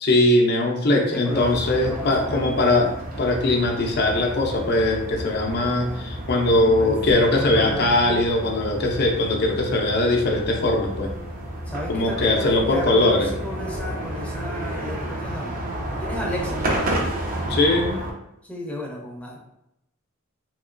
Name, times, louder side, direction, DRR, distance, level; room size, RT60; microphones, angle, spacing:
voice 1, 0.0-11.1 11.9-13.3 17.5-18.0, left 2 dB, 50° left, 2 dB, 0.5 m, -21 dB
voice 2, 0.9-2.8 6.5-8.0 11.7-17.1 18.4-19.4, left 1 dB, 5° left, -2 dB, 0.6 m, -34 dB
sound 1, 1.3-18.1, right 1 dB, 45° right, 0.5 m, -31 dB
2.9 x 2.8 x 2.5 m, 0.84 s
head